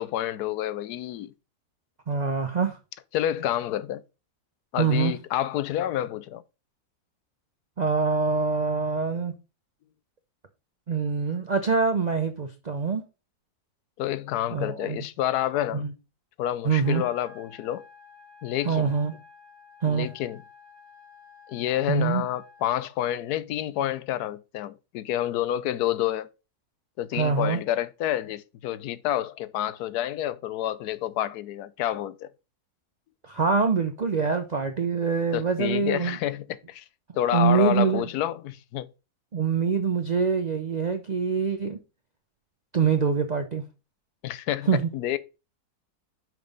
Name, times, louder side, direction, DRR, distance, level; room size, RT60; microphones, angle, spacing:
voice 1, 0.0-1.3 3.1-4.0 4.7-6.4 14.0-15.9 16.4-17.8 18.4-18.9 19.9-20.4 21.5-26.3 27.0-32.3 35.3-36.8 37.2-38.9 44.2-44.7 44.9-45.2, left 12 dB, 80° left, 1.2 m, -29 dB
voice 2, 2.1-2.8 4.8-5.1 7.8-9.3 10.9-13.0 14.5-15.0 15.7-15.9 16.6-17.0 18.6-19.2 19.8-20.1 21.9-22.2 27.1-27.6 33.2-36.2 37.3-38.1 39.3-41.8 42.7-43.6 44.7-44.9, right 5 dB, 40° right, 0.6 m, -24 dB
sound 1, 16.8-22.8, left 5 dB, 60° left, 3.1 m, -52 dB
6.0 x 5.3 x 5.3 m
omnidirectional pair, 1.6 m